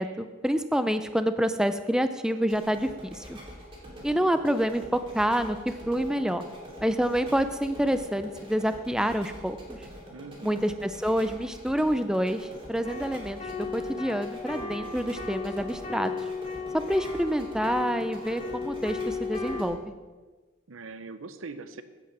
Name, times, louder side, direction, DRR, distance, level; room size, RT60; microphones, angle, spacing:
voice 1, 0.0-3.4 4.0-6.4 6.8-9.8 10.4-16.1 16.7-19.9, equal, 5° right, 9 dB, 0.4 m, -27 dB
sound 1, 2.4-19.7, equal, 25° right, 2.7 m, -45 dB
voice 2, 10.1-10.6 20.7-21.8, right 4 dB, 85° right, 11 dB, 0.8 m, -41 dB
sound 2, 12.8-19.6, left 4 dB, 35° left, 1.2 m, -35 dB
16.0 x 5.9 x 6.0 m, 1.3 s
head